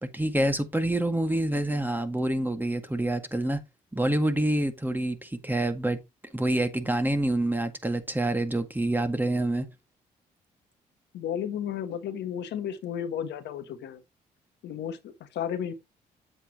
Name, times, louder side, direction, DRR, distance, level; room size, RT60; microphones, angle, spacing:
voice 1, 0.0-3.6 3.9-6.0 6.3-9.7, right 1 dB, 10° right, 1.8 m, -27 dB
voice 2, 11.1-14.0 14.6-15.7, left 9 dB, 75° left, 1.2 m, -33 dB
7.9 x 7.9 x 3.0 m
supercardioid pair, 55°, 18 cm